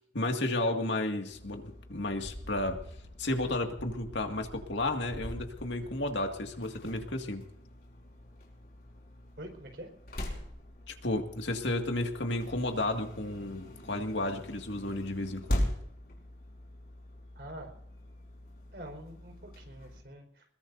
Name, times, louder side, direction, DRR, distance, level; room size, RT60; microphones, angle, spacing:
voice 1, 0.1-2.8 3.2-7.4 10.9-15.7, left 1 dB, 75° left, 4 dB, 2.1 m, -32 dB
sound 1, 1.3-20.0, left 1 dB, 50° left, 4.6 m, -42 dB
voice 2, 9.4-9.9 17.4-17.7 18.7-20.4, right 1 dB, 60° right, 3 dB, 4.6 m, -45 dB
21.5 x 21.5 x 2.7 m, 0.72 s
head